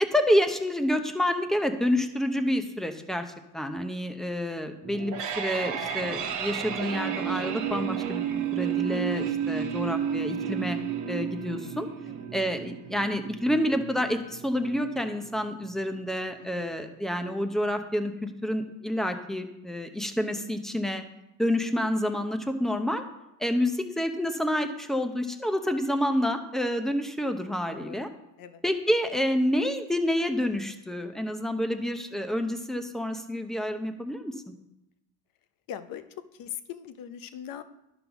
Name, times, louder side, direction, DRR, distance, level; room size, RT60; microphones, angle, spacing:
voice 1, 0.1-3.2 3.5-8.2 8.5-10.8 11.1-11.9 12.3-21.0 21.4-23.0 23.4-28.1 28.6-34.5, equal, ahead, 6 dB, 0.7 m, -28 dB
sound 1, 4.8-15.8, right 8 dB, 50° right, 1.2 m, -32 dB
voice 2, 16.4-16.7 27.7-28.0 28.4-28.6 35.7-37.6, left 10 dB, 60° left, 11 dB, 0.7 m, -41 dB
11.0 x 4.0 x 5.9 m, 0.89 s
cardioid pair, 115°, 38 cm